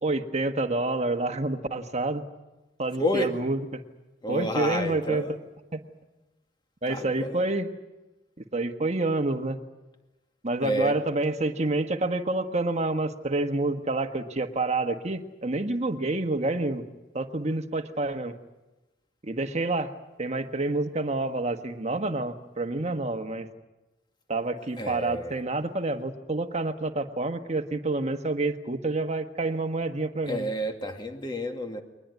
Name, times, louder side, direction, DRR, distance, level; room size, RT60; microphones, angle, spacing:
voice 1, 0.0-2.2 2.8-3.8 4.3-5.2 5.7-5.8 6.8-7.7 8.5-9.6 10.4-16.8 17.1-18.3 19.2-19.9 20.2-23.5 24.3-30.5, right 2 dB, 35° right, 7 dB, 1.5 m, -28 dB
voice 2, 3.0-3.3 4.2-5.3 6.9-7.4 10.6-11.0 24.6-25.3 30.2-31.8, equal, 25° left, 5 dB, 2.3 m, -30 dB
22.0 x 20.0 x 9.5 m, 1.1 s
head